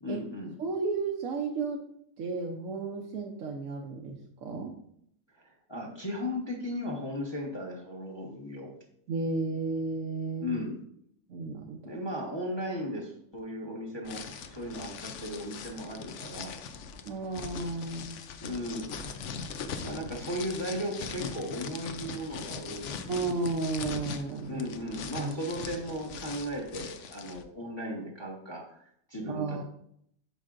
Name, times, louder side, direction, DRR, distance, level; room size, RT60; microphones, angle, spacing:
voice 1, 0.0-0.5 5.3-8.7 10.4-10.7 11.8-16.6 18.4-18.9 19.8-23.3 24.5-29.6, equal, 20° left, -1 dB, 0.8 m, -36 dB
voice 2, 0.6-1.8 2.2-4.7 9.1-10.6 11.3-11.8 17.0-18.2 23.1-24.6 25.1-25.3 29.3-29.6, right 3 dB, 60° right, 0 dB, 1.0 m, -33 dB
sound 1, 14.0-27.4, left 6 dB, 80° left, 0.6 m, -41 dB
10.5 x 4.9 x 2.5 m, 0.71 s
omnidirectional pair, 1.9 m